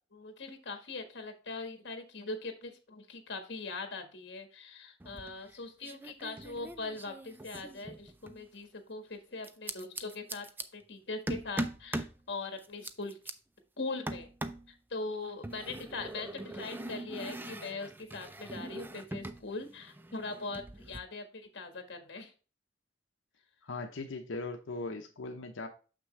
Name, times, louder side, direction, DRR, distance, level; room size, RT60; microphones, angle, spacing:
voice 1, 0.1-10.5 10.7-13.2 13.8-14.3 14.9-22.3, left 3 dB, 60° left, 1.5 m, -41 dB
sound 1, 5.0-5.5 5.8-8.4 9.4-10.6 11.3-12.2 12.6-13.3 14.1-14.7 15.4-19.4 19.7-21.0, right 1 dB, 10° right, 0.4 m, -41 dB
voice 2, 23.6-25.7, left 3 dB, 80° left, 0.8 m, -39 dB
6.8 x 6.1 x 3.2 m
head